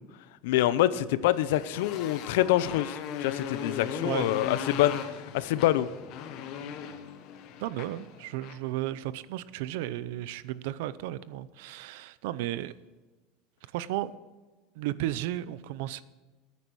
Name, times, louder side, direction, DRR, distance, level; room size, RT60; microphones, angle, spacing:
voice 1, 0.4-5.9, left 14 dB, 80° left, 15 dB, 0.7 m, -26 dB
Motorcycle, 1.3-8.7, left 7 dB, 50° left, 1.1 m, -38 dB
voice 2, 7.6-12.7 13.7-14.2 14.8-16.0, right 14 dB, 75° right, 17 dB, 0.6 m, -34 dB
15.5 x 9.5 x 4.7 m, 1.3 s
cardioid pair, 165°, 0 cm